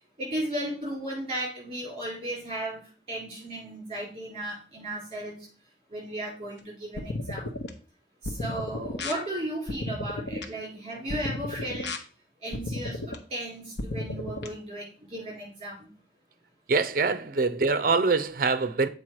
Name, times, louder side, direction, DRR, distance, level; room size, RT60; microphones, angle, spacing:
voice 1, 0.2-5.5 5.9-7.5 8.2-11.9 12.4-15.9, right 1 dB, 30° right, 4.1 m, -35 dB
sound 1, 7.0-7.7 8.2-9.1 9.7-10.4 11.1-12.0 12.5-13.2 13.8-14.5, left 2 dB, 75° left, 0.9 m, -34 dB
voice 2, 16.7-18.9, right 4 dB, 50° right, 0.6 m, -24 dB
7.5 x 4.7 x 4.7 m
head